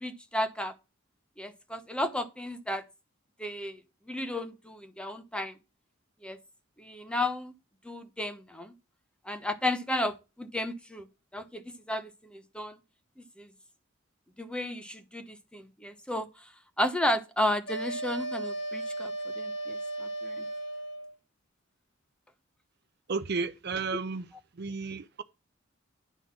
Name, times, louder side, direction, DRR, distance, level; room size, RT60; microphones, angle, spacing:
voice 1, 0.0-0.7 1.4-2.8 3.4-3.8 4.1-5.5 6.2-6.4 6.8-7.5 7.8-8.7 9.3-11.0 11.3-11.6 11.9-12.8 13.4-13.5 14.4-16.3 16.8-20.5, left 1 dB, 5° left, 0.9 m, -33 dB
sound 1, 17.7-21.2, right 1 dB, 55° left, 1.7 m, -35 dB
voice 2, 23.1-25.2, right 4 dB, 55° right, 0.6 m, -33 dB
10.0 x 3.9 x 7.2 m
head